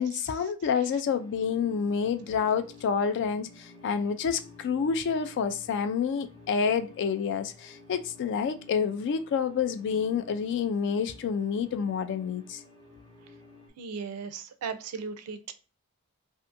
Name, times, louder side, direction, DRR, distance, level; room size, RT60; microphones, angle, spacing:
voice 1, 0.0-12.6, left 6 dB, 55° left, 0.3 m, -28 dB
sound 1, 1.1-13.7, left 3 dB, 25° left, 0.9 m, -53 dB
voice 2, 13.8-15.5, right 5 dB, 80° right, 0.4 m, -37 dB
2.5 x 2.5 x 2.5 m
head